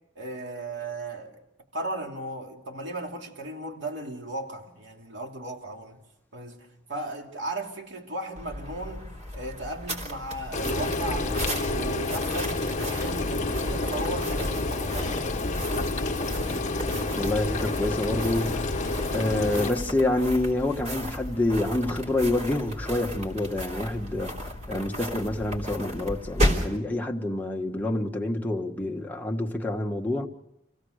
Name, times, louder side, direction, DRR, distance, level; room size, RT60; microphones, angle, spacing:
voice 1, 0.2-1.4 1.7-6.0 6.3-9.0 9.3-15.4, right 2 dB, 65° right, 2.9 m, -36 dB
sound 1, 8.3-26.8, equal, 35° right, 3.3 m, -34 dB
Frying (food), 10.5-19.7, left 2 dB, 40° left, 1.5 m, -29 dB
voice 2, 17.1-18.7 19.1-24.3 24.7-30.3, left 1 dB, 10° left, 1.7 m, -27 dB
27.0 x 17.0 x 6.6 m
head